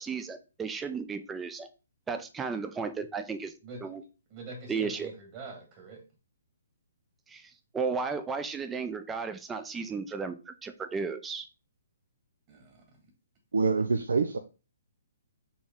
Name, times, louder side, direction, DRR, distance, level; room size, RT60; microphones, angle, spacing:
voice 1, 0.0-1.7 2.1-3.5 3.8-4.0 4.7-5.1 7.3-11.5, right 5 dB, 10° right, 8 dB, 0.4 m, -34 dB
voice 2, 3.6-3.9 4.3-6.1 12.5-13.1, right 3 dB, 30° right, 1 dB, 1.5 m, -45 dB
voice 3, 13.5-14.4, right 4 dB, 85° right, 7 dB, 0.4 m, -25 dB
4.2 x 3.0 x 3.5 m, 0.32 s
hypercardioid pair, 150°, 0 cm